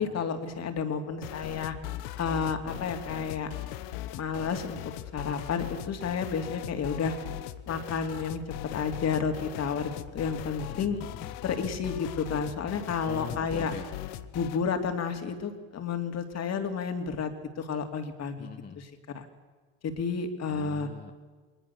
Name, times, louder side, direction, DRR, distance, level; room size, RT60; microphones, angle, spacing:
voice 1, 0.0-1.7 2.2-3.5 4.1-7.1 7.7-8.4 8.7-11.0 11.4-13.7 14.3-18.5 18.8-18.9 19.1-19.3 19.8-20.9, left 6 dB, 40° left, 7 dB, 2.7 m, -31 dB
sound 1, 1.2-14.6, left 13 dB, 75° left, 1.1 m, -39 dB
voice 2, 10.7-11.3 13.0-13.9 18.4-18.8 20.5-21.1, left 6 dB, 25° left, 5 dB, 1.2 m, -42 dB
21.0 x 19.5 x 7.0 m, 1.4 s
supercardioid pair, 100°, 38 cm